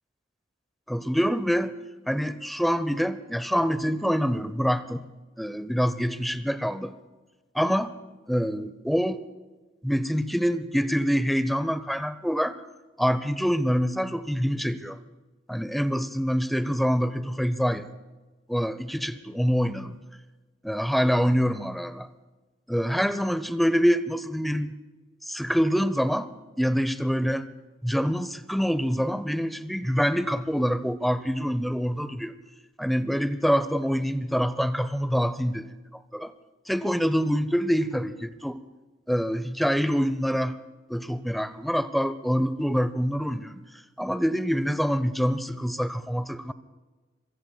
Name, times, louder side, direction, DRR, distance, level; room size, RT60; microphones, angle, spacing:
voice 1, 0.9-1.8 2.1-5.1 5.4-6.9 7.5-7.9 8.3-9.2 9.8-12.6 13.0-15.0 15.5-17.9 18.5-20.0 20.6-22.1 22.7-24.7 25.2-26.3 26.6-27.5 27.8-32.4 32.8-36.3 36.7-38.6 39.1-40.6 40.9-43.6 44.0-46.5, equal, ahead, 13 dB, 0.7 m, -25 dB
26.0 x 24.0 x 2.3 m, 1.3 s
head